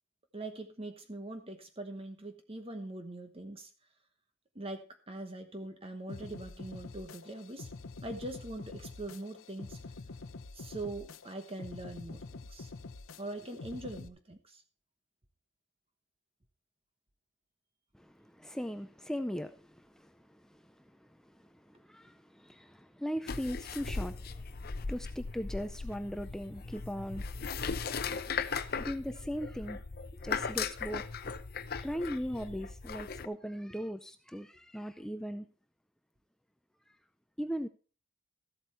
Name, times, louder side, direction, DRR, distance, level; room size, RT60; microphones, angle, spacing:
voice 1, 0.3-3.7 4.5-7.7 8.0-9.8 10.5-12.7 13.2-14.6 18.4-18.5, right 2 dB, 30° right, 1.0 m, -42 dB
sound 1, 6.1-14.1, left 3 dB, 85° left, 0.8 m, -47 dB
voice 2, 17.9-20.6 21.2-24.6 24.9-27.5 28.8-29.8 30.2-31.0 31.8-35.5 37.4-37.7, equal, 5° left, 0.4 m, -39 dB
sound 2, 23.3-33.3, left 5 dB, 50° left, 0.7 m, -38 dB
13.5 x 8.1 x 4.2 m
head